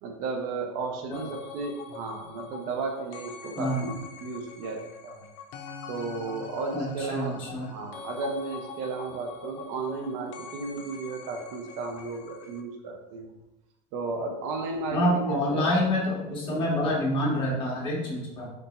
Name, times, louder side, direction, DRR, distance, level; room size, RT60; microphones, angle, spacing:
voice 1, 0.0-5.3 5.9-13.4 13.9-15.7 16.5-16.9, right 4 dB, 55° right, 3 dB, 0.8 m, -34 dB
sound 1, 1.1-12.6, left 5 dB, 50° left, 0.6 m, -44 dB
voice 2, 3.5-3.9 6.7-7.7 14.9-18.5, left 1 dB, 30° left, -4 dB, 1.5 m, -27 dB
4.5 x 2.7 x 4.1 m, 0.95 s
supercardioid pair, 150°, 16 cm